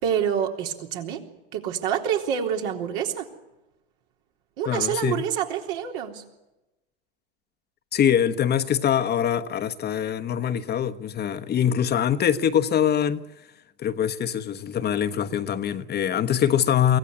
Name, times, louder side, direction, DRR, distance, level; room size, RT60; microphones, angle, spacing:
voice 1, 0.0-1.2 1.5-3.3 4.6-6.2, right 8 dB, 65° right, 3.8 m, -27 dB
voice 2, 4.7-5.2 7.9-13.2 13.8-17.0, left 9 dB, 35° left, 1.1 m, -23 dB
24.0 x 16.5 x 9.6 m
hypercardioid pair, 90°, 30 cm